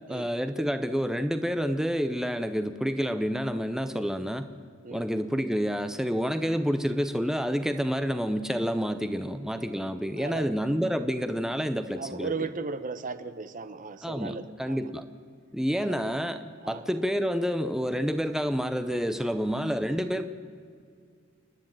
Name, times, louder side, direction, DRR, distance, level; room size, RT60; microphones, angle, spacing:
voice 1, 0.1-4.5 4.9-12.3 14.0-15.0 15.5-20.3, equal, 5° right, 9 dB, 0.7 m, -29 dB
voice 2, 10.2-10.6 12.0-14.9 15.8-16.0 16.6-16.8, right 4 dB, 40° right, 12 dB, 0.9 m, -36 dB
29.0 x 10.5 x 8.9 m, 2.2 s
head